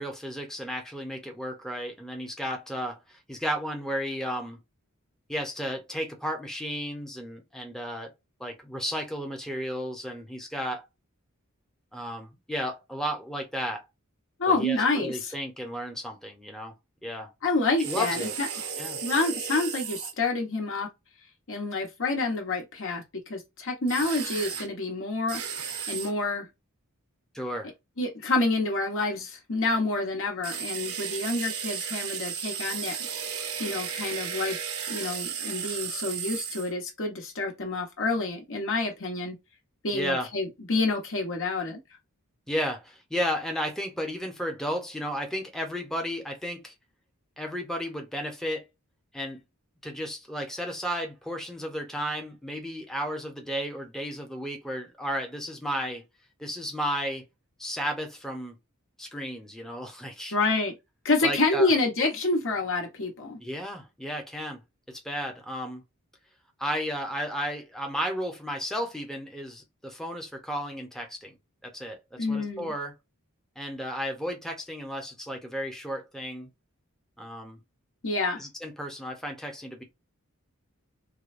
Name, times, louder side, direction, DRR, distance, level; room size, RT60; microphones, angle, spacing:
voice 1, 0.0-4.6 5.3-8.1 8.4-10.8 11.9-13.8 14.5-16.7 17.0-17.3 17.8-18.4 18.8-19.0 27.3-27.7 39.9-40.3 42.5-46.7 47.4-48.6 49.1-49.4 49.8-56.0 56.4-57.2 57.6-58.5 59.0-60.3 61.2-61.7 63.4-64.6 64.9-65.8 66.6-71.3 71.6-72.0 72.3-72.9 73.6-76.5 77.2-77.6 78.4-79.8, equal, ahead, 0.7 m, -33 dB
voice 2, 14.4-15.4 17.4-18.5 19.0-20.9 21.5-25.4 25.9-26.5 28.0-33.0 33.6-39.4 39.8-41.8 60.3-60.7 61.0-63.4 72.2-72.7 78.0-78.4, left 3 dB, 65° left, 1.2 m, -28 dB
sound 1, 17.8-20.1 23.9-24.7 25.3-26.1 30.4-36.7, right 7 dB, 80° right, 0.9 m, -34 dB
4.7 x 2.2 x 2.5 m
head